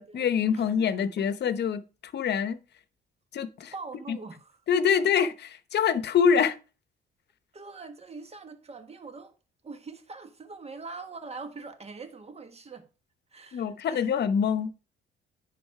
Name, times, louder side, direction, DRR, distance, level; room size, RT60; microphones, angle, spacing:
voice 1, 0.0-2.6 3.3-3.7 4.1-4.2 4.7-6.6 13.5-14.8, left 7 dB, 60° left, 0.9 m, -25 dB
voice 2, 3.7-4.6 7.5-9.3 9.6-12.9 13.3-14.1, right 4 dB, 30° right, 1.5 m, -43 dB
10.0 x 4.0 x 4.7 m
cardioid pair, 90°, 20 cm